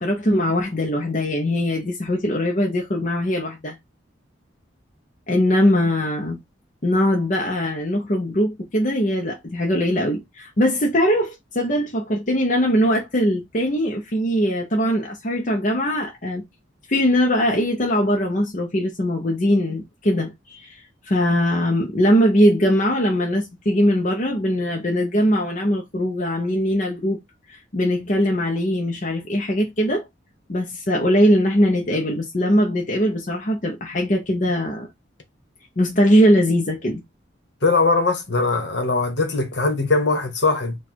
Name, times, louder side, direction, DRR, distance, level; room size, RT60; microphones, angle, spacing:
voice 1, 0.0-3.8 5.3-6.4 6.8-16.4 16.9-27.2 27.5-30.0 30.5-34.9 35.8-37.0, equal, 40° left, 0.8 m, -21 dB
voice 2, 37.6-40.8, left 3 dB, 60° left, 1.3 m, -20 dB
4.5 x 2.4 x 4.5 m
head